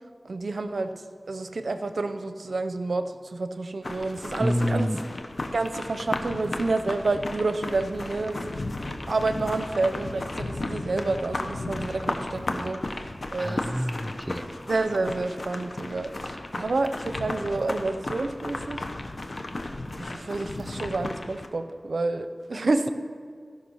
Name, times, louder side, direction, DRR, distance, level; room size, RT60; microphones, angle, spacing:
voice 1, 0.2-0.9 1.3-4.9 5.5-13.8 14.7-18.9 20.0-22.9, right 3 dB, 85° right, 9 dB, 0.6 m, -29 dB
sound 1, 3.8-21.5, left 2 dB, 65° left, 0.9 m, -34 dB
voice 2, 4.4-5.0 13.4-14.5, equal, 10° right, 8 dB, 0.6 m, -27 dB
15.5 x 5.8 x 5.6 m, 2.1 s
cardioid pair, 40°, 0 cm